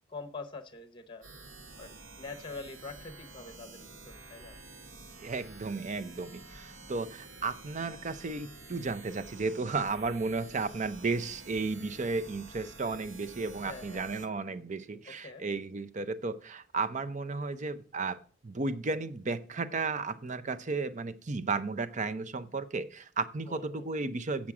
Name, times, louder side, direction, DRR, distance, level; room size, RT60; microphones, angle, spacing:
voice 1, 0.1-1.3 1.7-4.6 13.6-14.1 15.1-15.5 23.5-23.9, left 3 dB, 25° left, 0.9 m, -45 dB
sound 1, 1.2-14.3, right 3 dB, 70° right, 1.0 m, -50 dB
voice 2, 5.2-18.2 18.4-24.5, right 3 dB, 40° right, 0.6 m, -34 dB
7.4 x 7.4 x 4.8 m
head